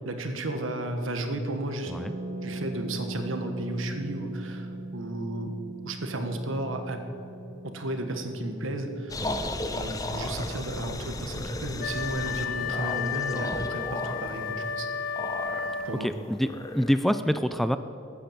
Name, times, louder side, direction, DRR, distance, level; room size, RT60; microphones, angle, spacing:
voice 1, 0.0-1.9 2.4-5.6 5.8-7.0 7.6-9.2 9.7-14.9 15.8-16.1, right 1 dB, 80° right, 6 dB, 1.4 m, -33 dB
Harp, 1.8-11.5 11.7-11.8 12.0-12.3, right 2 dB, 60° right, 1.5 m, -41 dB
sound 1, 9.1-17.0, left 1 dB, 15° left, 0.7 m, -35 dB
Wind instrument woodwind instrument, 11.8-16.2, left 6 dB, 45° left, 0.9 m, -33 dB
voice 2, 16.0-17.8, equal, ahead, 11 dB, 0.3 m, -27 dB
14.0 x 8.7 x 7.3 m, 2.8 s
head